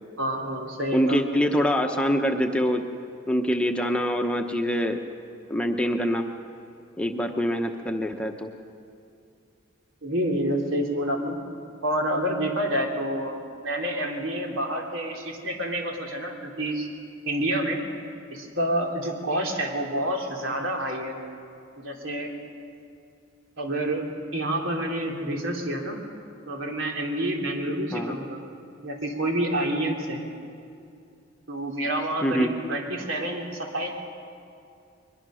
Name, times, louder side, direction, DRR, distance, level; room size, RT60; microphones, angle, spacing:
voice 1, 0.2-1.2 10.0-11.4 11.8-13.4 13.6-16.9 17.2-17.8 18.3-21.1 21.8-22.3 23.6-26.0 26.5-28.4 28.8-30.2 31.5-33.9, right 1 dB, 85° right, 1 dB, 3.1 m, -28 dB
voice 2, 0.9-2.8 3.3-5.0 5.5-6.2 7.0-8.5 27.9-28.2 32.2-32.5, equal, 5° left, 3 dB, 0.9 m, -24 dB
22.5 x 21.0 x 6.3 m, 2.5 s
head